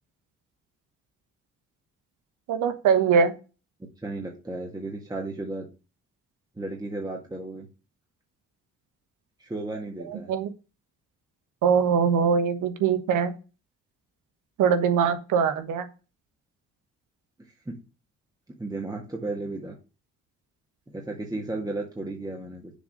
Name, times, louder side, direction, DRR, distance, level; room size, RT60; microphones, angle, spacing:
voice 1, 2.5-3.3 10.3-10.5 11.6-13.3 14.6-15.8, right 6 dB, 85° right, 9 dB, 1.3 m, -22 dB
voice 2, 4.0-5.7 6.6-7.7 9.4-10.3 17.7-17.8 18.6-19.8 20.9-22.7, right 2 dB, 10° right, 0 dB, 1.7 m, -34 dB
7.0 x 4.0 x 6.5 m, 0.31 s
cardioid pair, 90°, 30 cm